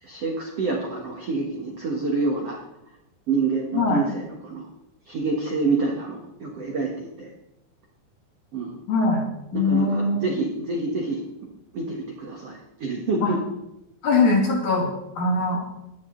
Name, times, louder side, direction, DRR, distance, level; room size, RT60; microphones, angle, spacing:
voice 1, 0.0-2.6 3.3-4.7 5.0-7.3 8.5-8.8 9.5-11.2 11.7-13.4, right 3 dB, 90° right, -1 dB, 1.3 m, -27 dB
voice 2, 3.7-4.0 8.9-9.2 9.5-10.2 13.2-13.3 14.0-14.9 15.2-15.6, left 3 dB, 50° left, 0 dB, 2.7 m, -21 dB
18.0 x 11.0 x 3.9 m, 0.89 s
omnidirectional pair, 5.5 m